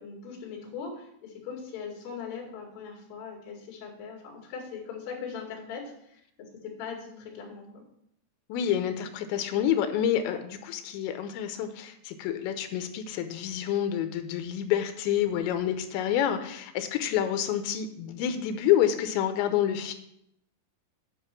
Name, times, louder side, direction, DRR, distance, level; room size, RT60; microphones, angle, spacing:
voice 1, 0.0-6.2 6.6-7.8, left 6 dB, 65° left, -3 dB, 4.1 m, -40 dB
voice 2, 8.5-19.9, left 10 dB, 85° left, 8 dB, 3.1 m, -28 dB
9.6 x 5.5 x 5.9 m, 0.74 s
omnidirectional pair, 5.1 m